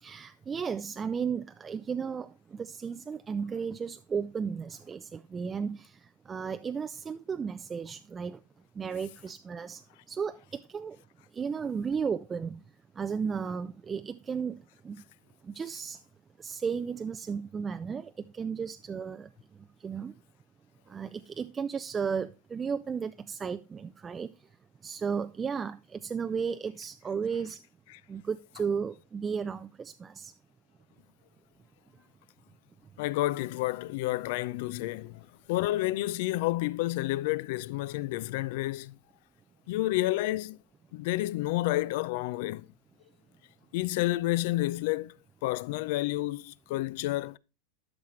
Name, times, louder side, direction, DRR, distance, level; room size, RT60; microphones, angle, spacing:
voice 1, 0.0-8.4 8.7-11.0 11.3-12.6 12.9-15.0 15.4-16.0 16.4-20.1 20.9-24.5 24.8-27.6 28.1-30.3, right 6 dB, 20° right, 0.4 m, -34 dB
voice 2, 33.0-39.0 39.7-40.6 40.9-42.7 43.7-45.2 45.4-47.4, left 17 dB, 60° left, 0.4 m, -30 dB
12.0 x 5.9 x 3.1 m
supercardioid pair, 140°, 0 cm